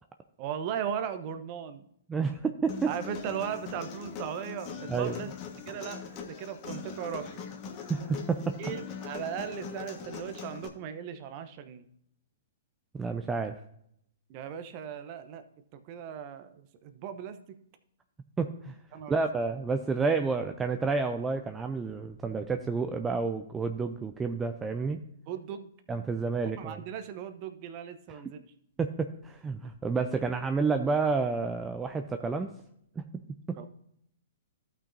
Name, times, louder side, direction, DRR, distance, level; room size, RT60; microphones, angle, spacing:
voice 1, 0.4-1.9 2.9-5.3 5.7-6.0 6.3-7.3 8.6-11.9 14.3-15.4 15.7-17.6 18.9-19.2 25.3-25.7 26.6-28.5 33.6-33.7, right 8 dB, 40° right, 9 dB, 0.9 m, -37 dB
voice 2, 2.1-2.9 4.9-5.2 7.9-8.6 12.9-13.6 18.4-18.8 19.1-25.0 25.9-26.8 28.8-32.5 33.0-33.1 33.5-33.6, right 4 dB, 15° right, 6 dB, 0.5 m, -30 dB
Human voice, 2.7-10.7, left 6 dB, 35° left, 1.5 m, -41 dB
15.5 x 5.9 x 2.7 m, 0.73 s
figure-of-eight pair, 115°, 0 cm